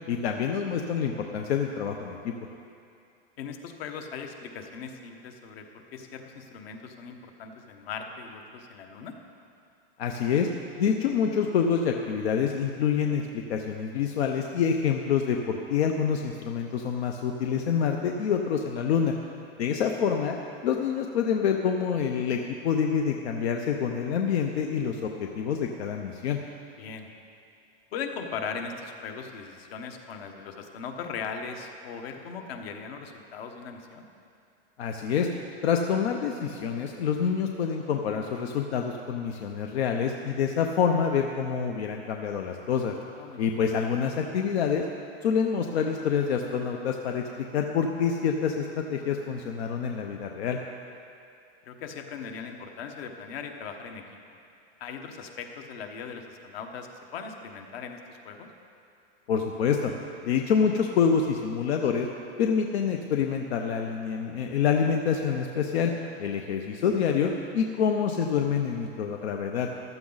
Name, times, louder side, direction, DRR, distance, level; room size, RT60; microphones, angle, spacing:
voice 1, 0.1-2.3 10.0-10.5 10.8-19.1 19.6-26.4 34.8-35.3 35.6-42.9 43.4-44.8 45.2-50.6 59.3-59.9 60.2-62.1 62.4-65.9 66.2-69.7, left 7 dB, 90° left, 3 dB, 0.9 m, -27 dB
voice 2, 3.4-9.1 26.8-27.1 27.9-34.1 43.2-43.5 51.6-54.0 54.8-58.5 66.3-66.4, left 6 dB, 70° left, 4 dB, 1.4 m, -39 dB
15.0 x 12.0 x 4.0 m, 2.5 s
supercardioid pair, 160°, 31 cm